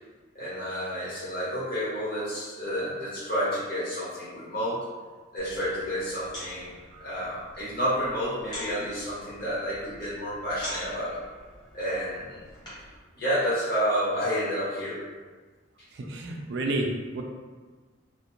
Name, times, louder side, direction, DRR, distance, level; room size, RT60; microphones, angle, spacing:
voice 1, 0.3-4.8 5.3-6.7 7.0-11.1 11.7-12.4 13.1-15.0, equal, 50° left, -10 dB, 1.2 m, -30 dB
sound 1, 5.4-13.0, left 1 dB, 20° left, 0.8 m, -45 dB
voice 2, 15.9-17.2, right 2 dB, 60° right, 1 dB, 0.3 m, -31 dB
2.5 x 2.1 x 2.8 m, 1.4 s
head